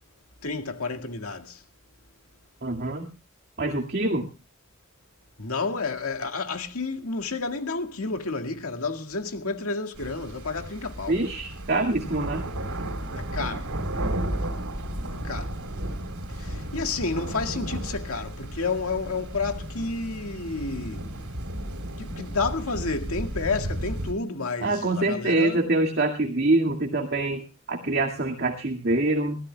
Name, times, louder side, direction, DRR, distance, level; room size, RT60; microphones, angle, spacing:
voice 1, 0.4-1.6 5.4-11.2 13.1-13.7 15.2-15.5 16.4-21.0 22.0-25.6, left 3 dB, 85° left, 2.0 m, -30 dB
voice 2, 2.6-3.1 3.6-4.3 11.1-12.5 24.6-29.5, right 2 dB, 50° right, 2.1 m, -25 dB
sound 1, 10.0-24.1, right 1 dB, 85° right, 3.5 m, -33 dB
22.5 x 16.5 x 2.2 m
head